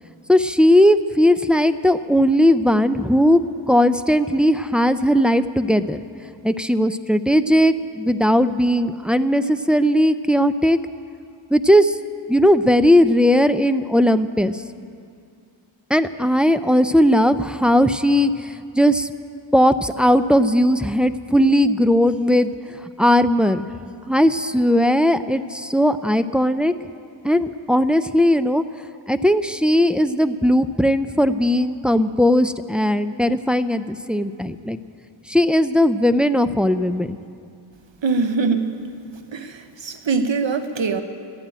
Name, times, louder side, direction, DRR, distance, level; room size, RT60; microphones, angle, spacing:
voice 1, 0.3-6.0 6.4-10.8 11.5-11.9 12.3-14.5 15.9-18.3 18.8-19.1 19.5-22.5 23.0-23.7 24.1-26.8 27.2-28.6 29.1-34.8 35.3-37.2, equal, ahead, 11 dB, 0.4 m, -18 dB
voice 2, 38.0-38.8 39.3-41.0, right 4 dB, 65° right, 8 dB, 1.0 m, -23 dB
12.0 x 11.5 x 9.0 m, 2.4 s
wide cardioid pair, 45°, 47 cm